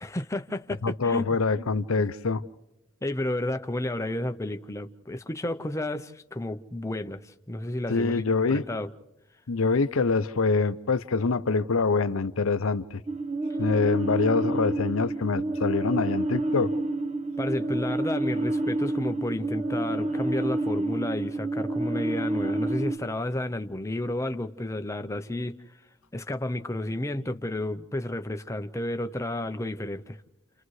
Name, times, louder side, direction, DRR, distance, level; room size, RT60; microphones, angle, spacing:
voice 1, 0.0-1.3 2.0-2.1 3.0-8.2 8.5-8.9 17.4-25.6 26.1-30.2, left 1 dB, 15° left, 0.6 m, -31 dB
voice 2, 0.8-2.4 7.9-8.6 9.5-13.0 13.6-16.7, left 4 dB, 75° left, 0.7 m, -25 dB
sound 1, 13.1-23.0, right 2 dB, 30° right, 1.1 m, -29 dB
30.0 x 29.0 x 3.2 m
head